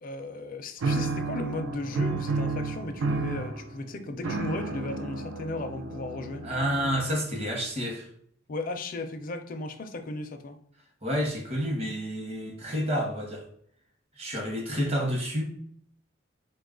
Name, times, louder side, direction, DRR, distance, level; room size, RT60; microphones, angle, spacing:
voice 1, 0.0-6.5 8.5-10.6, left 2 dB, 45° left, 7 dB, 0.4 m, -35 dB
sound 1, 0.8-7.3, right 3 dB, 80° right, 0.4 m, -31 dB
voice 2, 6.4-8.1 11.0-13.5 14.2-15.4, equal, 30° right, 1 dB, 0.9 m, -29 dB
4.3 x 2.3 x 3.7 m, 0.65 s
head